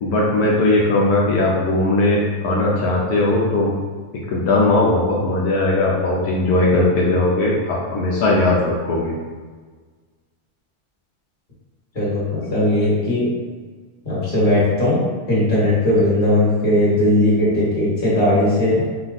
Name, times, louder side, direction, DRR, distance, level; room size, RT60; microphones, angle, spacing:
voice 1, 0.0-3.7 4.3-9.1, left 2 dB, 75° left, -4 dB, 1.2 m, -18 dB
voice 2, 11.9-13.3 14.0-15.0 15.3-18.8, left 1 dB, 30° left, -8 dB, 1.6 m, -18 dB
4.4 x 2.3 x 4.0 m, 1.4 s
omnidirectional pair, 1.7 m